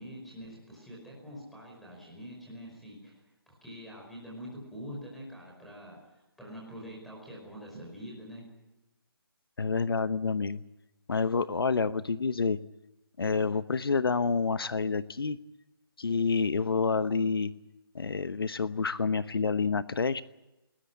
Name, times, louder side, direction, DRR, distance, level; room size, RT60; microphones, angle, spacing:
voice 1, 0.0-6.0 6.4-8.4, equal, ahead, -3 dB, 5.0 m, -45 dB
voice 2, 9.6-10.6 11.1-12.6 13.2-15.4 16.0-17.5 17.9-20.2, left 4 dB, 70° left, 14 dB, 1.0 m, -28 dB
21.0 x 19.5 x 9.4 m, 0.97 s
hypercardioid pair, 175°, 13 cm